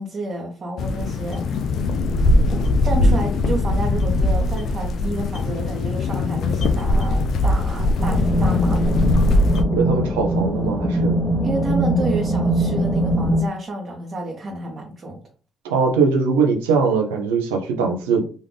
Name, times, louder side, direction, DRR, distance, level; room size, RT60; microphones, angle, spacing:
voice 1, 0.0-1.6 2.5-9.0 11.4-15.2, right 2 dB, 45° right, -1 dB, 0.7 m, -30 dB
sound 1, 0.8-9.6, left 2 dB, 65° left, 0.3 m, -20 dB
sound 2, 8.0-13.4, right 1 dB, 15° left, 0.8 m, -21 dB
voice 2, 9.7-11.2 15.7-18.3, right 5 dB, 90° right, 3 dB, 0.5 m, -21 dB
2.5 x 2.1 x 3.2 m, 0.39 s
hypercardioid pair, 50°, 0 cm